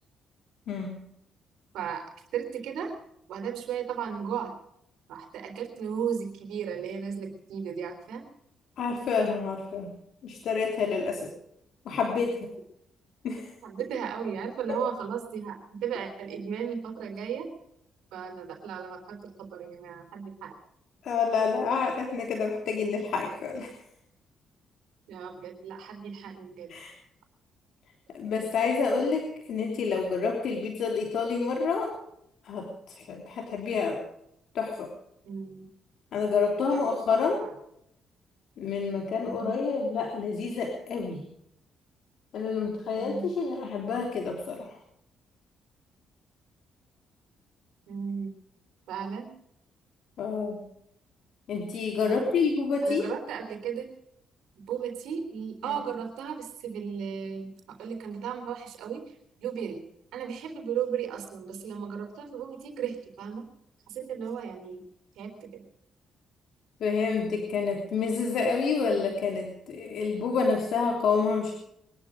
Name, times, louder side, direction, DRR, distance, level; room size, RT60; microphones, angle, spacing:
voice 1, 0.7-1.0 8.8-9.9 10.2-11.3 11.8-12.5 13.2-13.5 14.7-14.8 21.0-23.7 26.7-26.9 28.1-31.9 32.4-34.0 34.5-34.9 36.1-37.4 38.6-41.2 42.3-44.8 50.2-50.6 51.5-53.1 66.8-71.5, left 5 dB, 70° left, 1 dB, 3.2 m, -28 dB
voice 2, 1.7-2.1 2.3-2.9 3.3-4.5 5.1-8.2 13.6-17.5 18.1-20.6 25.1-26.7 35.2-35.7 36.7-37.6 39.2-39.6 43.0-43.3 47.9-48.3 48.9-49.3 52.0-52.4 52.8-53.9 54.7-59.8 60.1-63.5 63.9-64.8 65.1-65.6, right 7 dB, 90° right, 5 dB, 3.6 m, -35 dB
23.0 x 12.0 x 5.1 m, 0.76 s
cardioid pair, 100°, 0 cm